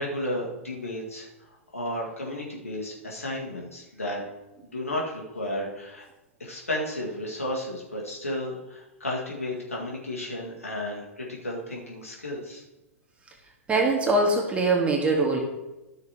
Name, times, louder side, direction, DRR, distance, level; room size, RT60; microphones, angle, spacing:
voice 1, 0.0-4.2 4.6-6.1 6.4-12.6, left 1 dB, 80° left, -2 dB, 2.0 m, -33 dB
voice 2, 13.7-15.4, right 2 dB, 15° right, -1 dB, 2.0 m, -22 dB
13.0 x 6.5 x 3.0 m, 1.0 s
figure-of-eight pair, 100°, 7 cm